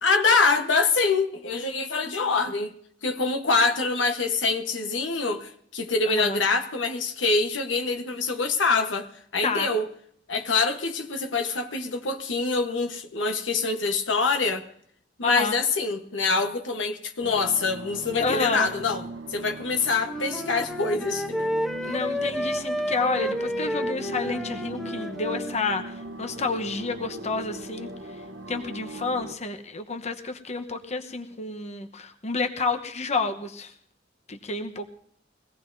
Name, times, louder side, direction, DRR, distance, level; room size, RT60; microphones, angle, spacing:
voice 1, 0.0-2.7 3.0-9.9 10.3-14.6 15.2-19.0 19.3-21.3, left 4 dB, 90° left, 6 dB, 1.2 m, -25 dB
voice 2, 6.0-6.4 9.4-9.7 15.2-15.6 18.2-18.7 21.8-27.9 28.5-33.7 34.3-34.9, left 3 dB, 40° left, 6 dB, 1.0 m, -29 dB
sound 1, 17.2-29.3, right 1 dB, 80° right, 0.9 m, -39 dB
Wind instrument woodwind instrument, 20.0-25.6, equal, ahead, 0.5 m, -30 dB
22.5 x 17.5 x 2.7 m, 0.65 s
head